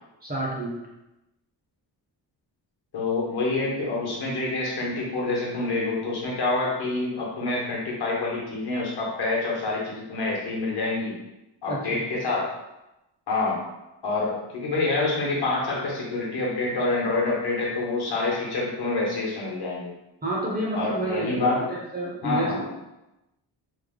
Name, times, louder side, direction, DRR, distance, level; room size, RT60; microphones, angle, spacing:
voice 1, 0.2-0.8 11.7-11.8 20.2-22.7, right 1 dB, 20° right, -5 dB, 0.5 m, -29 dB
voice 2, 2.9-11.1 11.6-12.5 13.3-13.6 14.0-19.9 20.7-21.7 22.2-22.7, left 3 dB, 65° left, -3 dB, 1.0 m, -27 dB
3.2 x 2.0 x 3.6 m, 0.93 s
wide cardioid pair, 170°, 42 cm